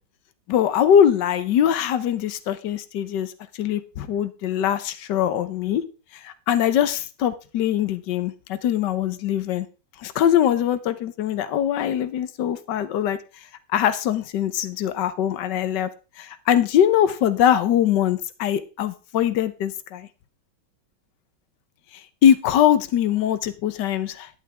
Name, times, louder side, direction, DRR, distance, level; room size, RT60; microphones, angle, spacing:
voice 1, 0.5-5.8 6.1-9.7 10.0-13.2 13.7-15.9 16.2-20.1 21.9-24.3, left 10 dB, 65° left, 14 dB, 1.4 m, -22 dB
11.5 x 9.7 x 3.4 m, 0.34 s
omnidirectional pair, 2.2 m